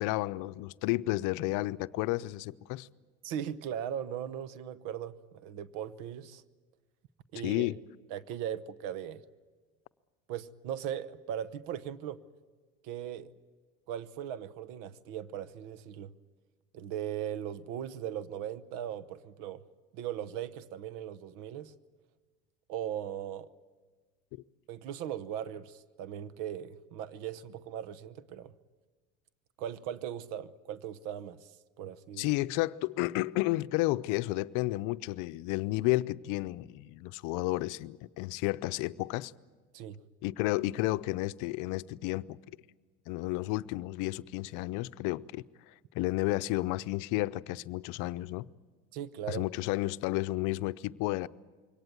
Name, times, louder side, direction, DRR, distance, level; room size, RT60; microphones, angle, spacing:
voice 1, 0.0-2.9 7.4-7.8 32.2-39.3 40.2-42.4 43.1-45.4 45.9-48.5 49.3-51.3, left 19 dB, 70° left, 0.6 m, -32 dB
voice 2, 3.2-6.4 7.3-7.7 8.1-9.2 10.3-12.2 12.8-13.3 13.9-16.1 16.7-19.6 19.9-21.7 22.7-23.5 24.7-28.5 29.6-31.5 31.8-32.3 39.7-40.0 48.9-49.4, right 10 dB, 75° right, 1.0 m, -38 dB
23.0 x 18.0 x 9.3 m
supercardioid pair, 90°, 32 cm